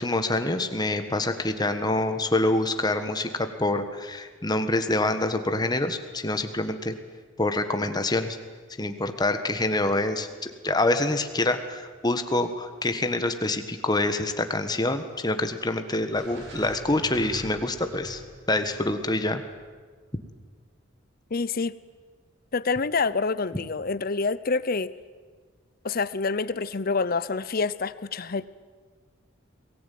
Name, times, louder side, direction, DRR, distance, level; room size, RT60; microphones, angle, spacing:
voice 1, 0.0-6.9 7.4-8.4 8.8-18.2 18.5-19.4, left 2 dB, 20° left, 8 dB, 1.5 m, -26 dB
sound 1, 16.1-20.3, equal, 60° right, 6.8 m, -43 dB
voice 2, 21.3-21.8 22.5-24.9 25.8-28.4, left 4 dB, 45° left, 17 dB, 0.7 m, -27 dB
22.5 x 18.5 x 9.4 m, 1.5 s
head